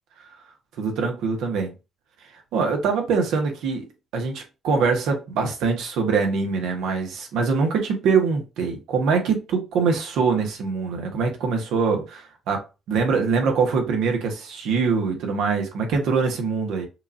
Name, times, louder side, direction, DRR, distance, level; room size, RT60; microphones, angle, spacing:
voice 1, 0.8-1.7 2.5-3.8 4.1-12.6 12.9-16.9, right 5 dB, 85° right, 1.4 m, -23 dB
6.3 x 2.6 x 2.8 m
cardioid pair, 90°, 0 cm